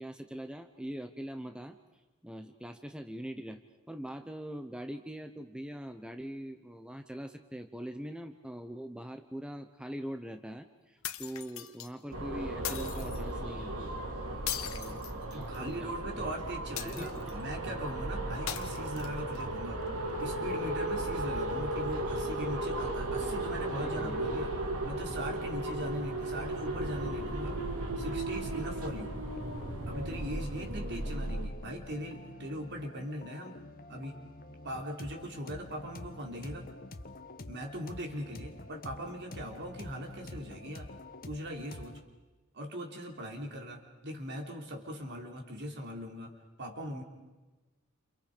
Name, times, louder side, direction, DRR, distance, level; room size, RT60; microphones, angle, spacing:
voice 1, 0.0-1.8 2.2-3.6 3.9-13.9 14.7-16.3 16.8-17.2 23.2-23.4 23.8-24.3, equal, 5° right, 6 dB, 0.9 m, -42 dB
sound 1, 11.0-11.9 12.6-13.2 14.5-15.7 16.8-17.4 18.5-19.4, left 10 dB, 70° left, 1.6 m, -39 dB
sound 2, 12.1-31.5, right 1 dB, 80° right, 3.0 m, -35 dB
voice 2, 15.3-19.8 20.2-24.5 24.8-27.6 28.0-29.2 29.9-33.6 33.9-34.2 34.5-36.7 37.5-40.9 41.3-42.0 42.5-46.3 46.6-47.0, equal, 55° right, 2 dB, 3.9 m, -40 dB
sound 3, 23.5-42.0, left 2 dB, 40° left, 1.3 m, -48 dB
29.5 x 28.5 x 5.2 m, 1.2 s
head